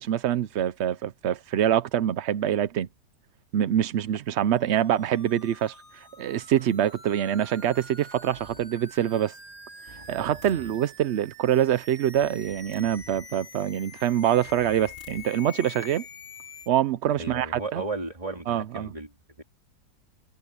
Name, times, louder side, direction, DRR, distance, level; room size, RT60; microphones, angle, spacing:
voice 1, 0.0-2.9 3.5-9.3 9.9-16.0 16.7-17.8 18.5-18.9, right 10 dB, 80° right, 0.6 m, -25 dB
sound 1, 4.4-16.7, left 3 dB, 65° left, 8.9 m, -46 dB
sound 2, 8.3-8.7 9.9-10.8 12.1-13.3 14.4-15.4, left 1 dB, 25° left, 3.3 m, -50 dB
voice 2, 17.2-19.1 19.4-19.5, right 2 dB, 20° right, 3.8 m, -35 dB
omnidirectional pair, 1.9 m